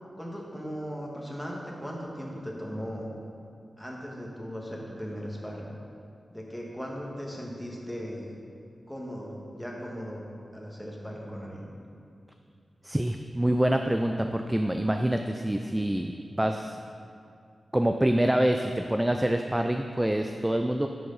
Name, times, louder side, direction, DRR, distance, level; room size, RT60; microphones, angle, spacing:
voice 1, 0.2-3.1 3.8-5.7 6.3-8.4 8.9-10.2 10.5-11.7, equal, 5° left, -2 dB, 1.6 m, -38 dB
voice 2, 12.8-16.1 16.4-16.8 17.7-20.9, right 1 dB, 10° right, 5 dB, 0.4 m, -26 dB
10.5 x 6.3 x 4.0 m, 2.5 s
wide cardioid pair, 80°, 0 cm